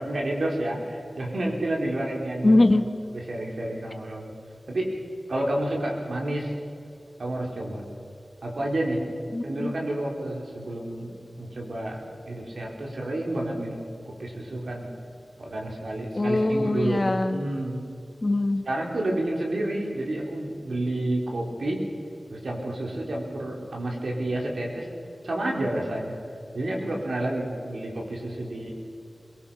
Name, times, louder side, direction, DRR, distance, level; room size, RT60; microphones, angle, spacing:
voice 1, 0.0-2.6 3.1-4.3 4.7-5.0 5.3-6.5 7.2-7.8 8.4-9.1 9.4-14.9 15.4-17.8 18.7-21.8 22.3-24.9 25.2-26.2 26.5-28.7, right 1 dB, 85° right, -1 dB, 4.4 m, -30 dB
voice 2, 2.4-2.8 9.3-9.7 16.1-17.4 18.2-18.6, left 2 dB, 40° left, 7 dB, 1.6 m, -22 dB
23.0 x 22.0 x 5.9 m, 2.4 s
wide cardioid pair, 85°, 0 cm